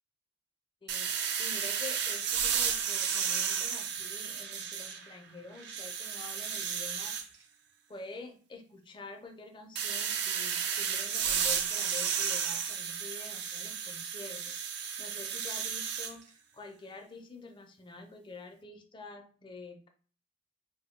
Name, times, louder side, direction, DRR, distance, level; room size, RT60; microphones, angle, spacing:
voice 1, 0.8-7.5 7.9-14.5 15.0-19.9, left 3 dB, 25° left, 5 dB, 0.4 m, -47 dB
sound 1, 0.9-5.2 5.6-7.2 9.8-16.1, right 7 dB, 60° right, 0.4 m, -33 dB
2.6 x 2.1 x 4.0 m, 0.43 s
head